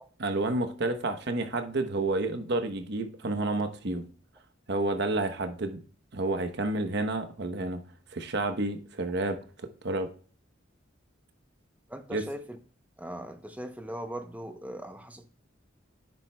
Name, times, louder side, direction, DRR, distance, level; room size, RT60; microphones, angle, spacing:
voice 1, 0.2-4.1 4.7-5.8 6.1-7.8 8.1-9.4 9.8-10.1 12.1-12.2, right 2 dB, 60° right, 0.9 m, -30 dB
voice 2, 11.9-12.6 13.0-15.3, right 1 dB, 10° right, 0.7 m, -39 dB
9.8 x 7.4 x 2.3 m
head